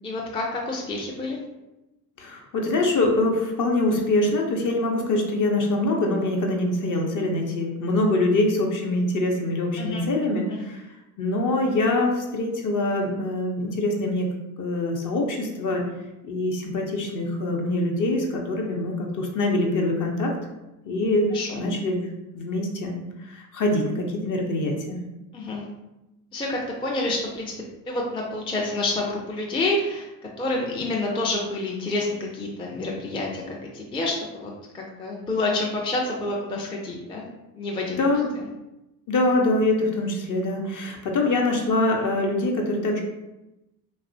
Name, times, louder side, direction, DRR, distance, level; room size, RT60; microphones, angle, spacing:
voice 1, 0.0-1.4 9.8-10.1 10.5-10.6 21.3-21.7 25.3-25.7 26.3-27.5 27.9-30.1 30.4-37.2 37.5-38.0 38.4-38.5, left 2 dB, 15° left, -2 dB, 0.4 m, -28 dB
voice 2, 2.2-10.8 11.2-14.3 14.6-15.8 16.2-20.3 20.8-22.0 22.3-25.0 38.0-38.3 39.1-43.0, left 2 dB, 45° left, 1 dB, 0.7 m, -24 dB
2.9 x 2.0 x 2.6 m, 0.98 s
hypercardioid pair, 65°, 42 cm